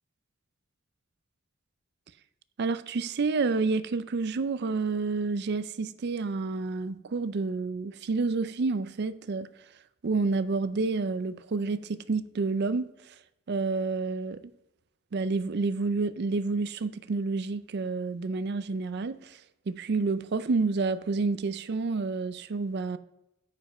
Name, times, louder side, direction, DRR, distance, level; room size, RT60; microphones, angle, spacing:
voice 1, 2.6-9.5 10.0-13.1 13.5-14.4 15.1-19.4 19.7-23.0, right 4 dB, 50° right, 0.4 m, -29 dB
9.2 x 5.1 x 5.4 m
head